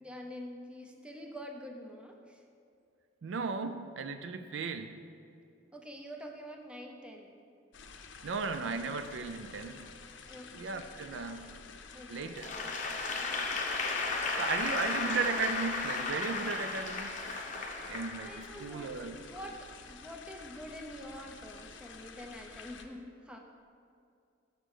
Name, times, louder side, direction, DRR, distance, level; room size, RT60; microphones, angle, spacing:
voice 1, 0.0-2.4 5.7-7.3 10.3-10.5 11.4-11.6 11.9-13.7 18.2-23.4, equal, 5° right, 1 dB, 0.7 m, -47 dB
voice 2, 3.2-5.0 8.2-9.9 10.5-11.5 12.1-12.5 14.4-17.2 17.9-19.2, right 4 dB, 70° right, 9 dB, 0.4 m, -36 dB
sound 1, 7.7-22.8, left 5 dB, 65° left, 0.6 m, -50 dB
Applause / Crowd, 12.4-18.7, left 3 dB, 40° left, 0.8 m, -34 dB
6.7 x 6.1 x 6.4 m, 2.4 s
head